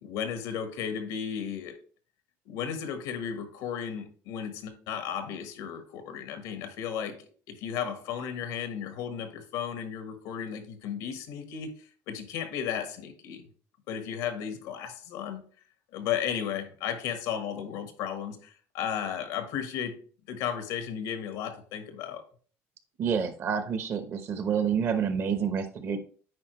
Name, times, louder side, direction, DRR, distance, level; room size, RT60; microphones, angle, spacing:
voice 1, 0.0-1.8 2.4-7.2 7.5-13.4 13.9-15.4 15.9-20.0 20.3-22.2, left 8 dB, 85° left, 1.3 m, -34 dB
voice 2, 23.0-26.0, right 7 dB, 50° right, 1.0 m, -28 dB
9.5 x 4.4 x 3.1 m
cardioid pair, 125°, 6 cm